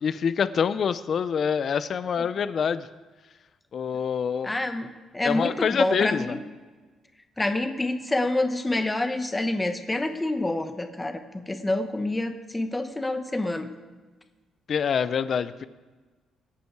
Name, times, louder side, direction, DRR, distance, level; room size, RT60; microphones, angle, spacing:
voice 1, 0.0-2.9 3.7-4.5 5.2-6.4 14.7-15.6, left 7 dB, 40° left, 14 dB, 0.5 m, -26 dB
voice 2, 4.4-4.9 5.1-6.4 7.4-13.7, left 2 dB, 10° left, 7 dB, 1.0 m, -27 dB
23.5 x 8.5 x 4.7 m, 1.3 s
cardioid pair, 180°, 0 cm